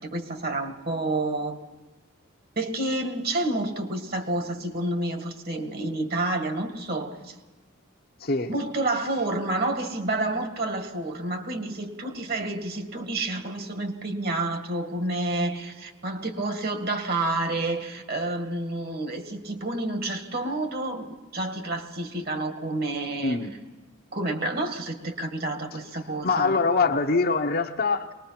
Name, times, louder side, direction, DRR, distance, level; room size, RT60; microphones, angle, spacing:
voice 1, 0.0-1.6 2.6-7.4 8.5-23.4 24.1-26.6, right 2 dB, 45° right, 6 dB, 1.9 m, -29 dB
voice 2, 26.2-28.1, left 4 dB, 45° left, 5 dB, 0.9 m, -23 dB
23.0 x 20.0 x 5.9 m, 1.3 s
head